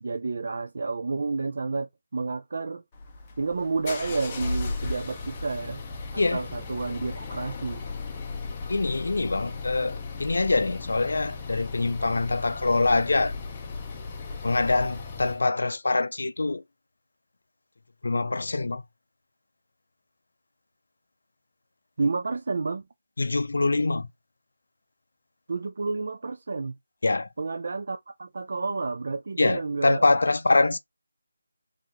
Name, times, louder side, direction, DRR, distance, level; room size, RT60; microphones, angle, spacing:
voice 1, 0.0-2.8 3.4-5.8 6.1-7.8 22.0-22.8 25.5-26.8 27.4-30.0, right 3 dB, 45° right, 0.3 m, -30 dB
sound 1, 2.9-15.4, left 4 dB, 15° left, 0.6 m, -36 dB
voice 2, 8.7-13.3 14.4-16.6 18.0-18.8 23.2-24.1 27.0-27.3 29.4-30.8, left 3 dB, 65° left, 0.5 m, -24 dB
3.5 x 2.7 x 3.6 m
figure-of-eight pair, 175°, 0 cm